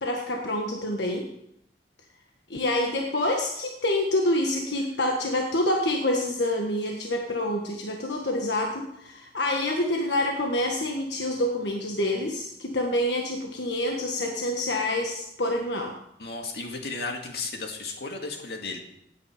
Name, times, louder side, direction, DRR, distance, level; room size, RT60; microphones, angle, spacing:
voice 1, 0.0-1.3 2.5-15.9, left 1 dB, 80° left, 1 dB, 1.5 m, -27 dB
voice 2, 16.2-18.8, left 3 dB, 65° left, 3 dB, 2.2 m, -34 dB
17.0 x 9.4 x 5.0 m, 0.77 s
head